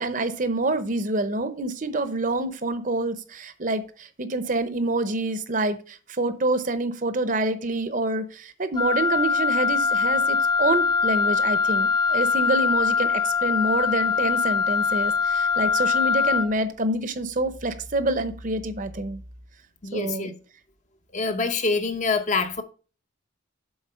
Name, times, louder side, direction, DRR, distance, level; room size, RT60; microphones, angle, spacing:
voice 1, 0.0-19.2 19.9-20.2, right 2 dB, 40° right, 0.8 m, -27 dB
Wind instrument woodwind instrument, 8.8-16.5, left 5 dB, 20° left, 0.4 m, -22 dB
voice 2, 19.8-20.3 21.1-22.6, left 4 dB, 35° left, 0.8 m, -25 dB
7.2 x 4.6 x 5.6 m
head